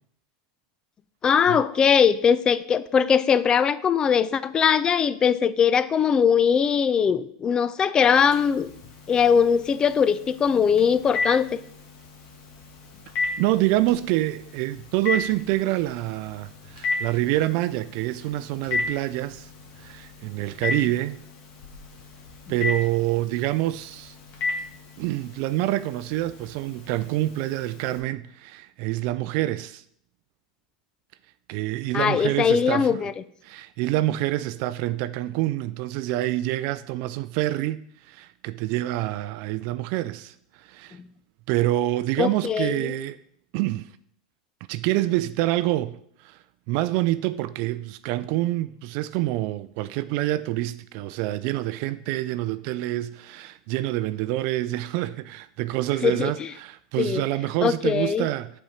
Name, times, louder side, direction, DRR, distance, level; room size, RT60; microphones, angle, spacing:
voice 1, 1.2-8.7 9.1-11.6 31.9-33.1 42.2-42.9 56.0-56.5 57.0-57.3 57.6-58.3, left 7 dB, 25° left, 0.4 m, -21 dB
Telephone, 8.1-28.0, left 3 dB, 50° left, 1.7 m, -35 dB
voice 2, 13.4-19.5 19.8-21.2 22.5-24.1 25.0-29.8 31.5-33.1 33.4-37.8 38.1-41.0 41.5-43.2 43.5-43.9 44.7-46.0 46.2-46.4 46.7-58.5, right 16 dB, 55° right, 0.3 m, -26 dB
7.1 x 4.4 x 4.9 m
hypercardioid pair, 105°, 3 cm